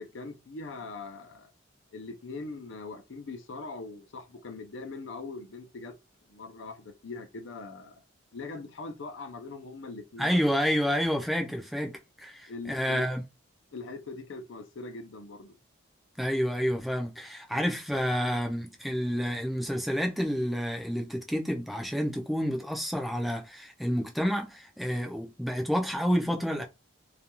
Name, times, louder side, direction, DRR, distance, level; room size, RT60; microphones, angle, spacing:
voice 1, 0.0-1.5 1.9-5.9 6.3-8.0 8.3-10.4 12.5-13.1 13.7-15.6, left 3 dB, 70° left, 0.5 m, -41 dB
voice 2, 10.2-13.2 16.2-26.6, equal, ahead, 0.3 m, -29 dB
2.4 x 2.2 x 2.9 m
head